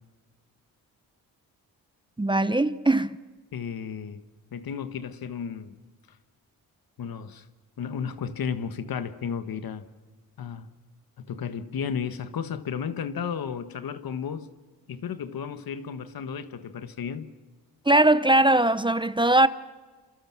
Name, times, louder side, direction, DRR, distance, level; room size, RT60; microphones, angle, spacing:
voice 1, 2.2-3.2 17.9-19.5, right 1 dB, 15° right, 0.8 m, -20 dB
voice 2, 3.5-4.2 4.5-5.8 7.0-7.5 7.8-9.9 10.4-10.7 11.2-14.5 14.9-17.3, left 7 dB, 70° left, 1.5 m, -33 dB
28.5 x 27.0 x 6.1 m
cardioid pair, 85°, 37 cm